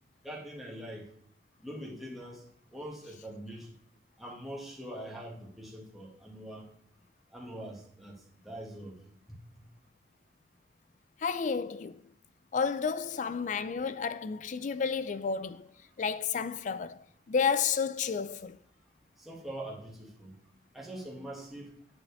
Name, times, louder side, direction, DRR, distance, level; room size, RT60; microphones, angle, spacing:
voice 1, 0.2-1.0 1.6-2.4 2.7-3.7 4.2-6.6 7.3-8.9 9.3-9.4 19.2-20.3 20.7-21.7, right 1 dB, ahead, 1.9 m, -43 dB
voice 2, 11.2-12.0 12.5-15.7 16.0-18.6, left 6 dB, 45° left, 0.4 m, -31 dB
8.7 x 7.7 x 3.4 m
head